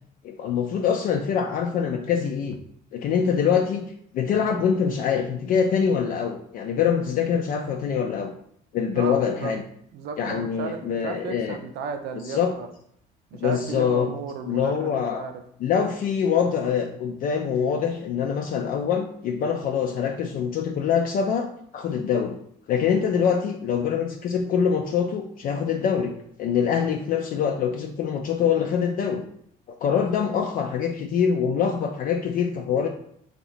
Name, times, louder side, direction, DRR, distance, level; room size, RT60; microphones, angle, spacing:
voice 1, 0.2-2.6 2.9-3.8 4.1-8.3 8.7-9.6 10.2-11.6 12.2-12.5 13.4-14.1 14.4-15.3 15.6-21.5 21.7-22.4 22.7-26.1 26.4-29.2 29.8-32.9, left 7 dB, 55° left, 3 dB, 0.4 m, -24 dB
voice 2, 8.9-9.5 9.9-12.7 13.3-15.4, right 6 dB, 75° right, 6 dB, 0.5 m, -34 dB
2.9 x 2.9 x 4.0 m, 0.68 s
cardioid pair, 110°, 17 cm